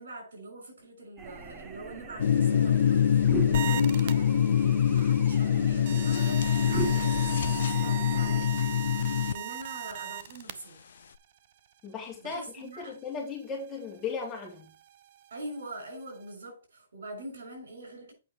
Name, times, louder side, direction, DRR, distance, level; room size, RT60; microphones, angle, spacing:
voice 1, 0.0-8.6 9.3-10.8 12.2-12.9 15.3-18.1, right 1 dB, 85° right, 5.9 m, -43 dB
sound 1, 1.2-8.4, right 6 dB, 15° right, 0.8 m, -40 dB
sound 2, 2.2-9.3, left 9 dB, 70° left, 0.4 m, -24 dB
sound 3, 3.5-4.1 4.8-5.2 5.9-10.5 12.1-12.2 12.5-12.6 12.8-16.3, right 12 dB, 45° right, 0.7 m, -39 dB
voice 2, 11.8-14.7, left 5 dB, 15° left, 3.4 m, -37 dB
8.5 x 5.7 x 4.3 m
hypercardioid pair, 155°, 0 cm